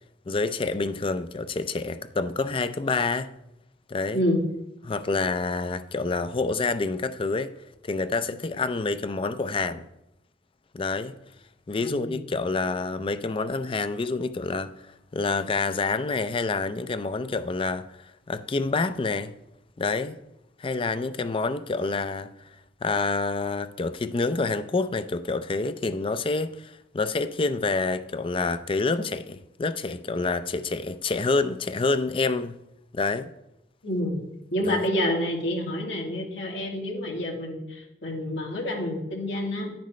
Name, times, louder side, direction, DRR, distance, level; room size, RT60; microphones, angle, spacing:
voice 1, 0.3-3.3 3.9-4.2 4.8-7.5 7.8-9.8 10.7-11.1 11.7-14.7 15.1-19.3 19.8-20.2 20.6-22.3 22.8-32.6 32.9-33.3 34.6-34.8, left 3 dB, 30° left, 0.4 m, -27 dB
voice 2, 11.8-12.2 33.8-34.2 34.5-39.7, left 1 dB, 90° left, 2.3 m, -28 dB
10.5 x 10.5 x 3.2 m
head